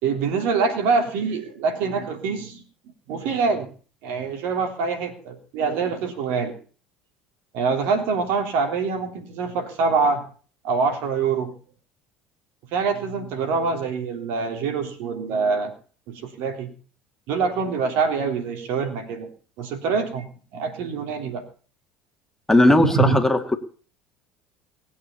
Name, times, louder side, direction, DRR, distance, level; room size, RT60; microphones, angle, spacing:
voice 1, 0.0-2.6 3.1-3.7 4.0-6.5 7.5-10.2 10.6-11.6 12.7-15.7 16.1-16.7 17.3-19.3 19.6-21.4 22.8-23.2, right 5 dB, 55° right, 5 dB, 3.4 m, -25 dB
voice 2, 22.5-23.6, left 1 dB, 10° left, 5 dB, 2.3 m, -17 dB
20.0 x 9.1 x 7.0 m, 0.42 s
figure-of-eight pair, 65°, 4 cm